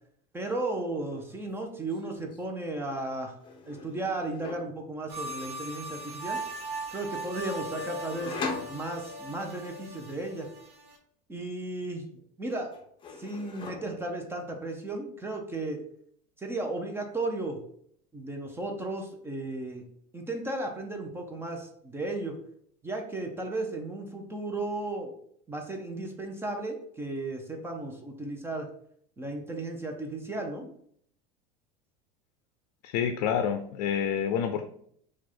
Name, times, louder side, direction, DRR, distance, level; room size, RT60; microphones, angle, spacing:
voice 1, 0.3-3.4 3.7-6.4 6.9-10.5 11.3-12.1 12.4-12.7 13.2-15.8 16.4-17.6 18.1-19.8 20.1-22.3 22.8-25.1 25.5-28.7 29.2-30.7, right 2 dB, 10° right, 3 dB, 0.6 m, -35 dB
sound 1, 1.1-1.4 1.6-2.4 3.4-4.8 7.8-9.4 11.6-12.2 12.5-14.2, left 4 dB, 25° left, 0.8 m, -41 dB
sound 2, 5.1-11.0, right 2 dB, 55° right, 1.2 m, -39 dB
voice 2, 32.8-34.6, left 8 dB, 75° left, 8 dB, 0.4 m, -28 dB
4.6 x 2.4 x 4.3 m, 0.66 s
supercardioid pair, 140°, 20 cm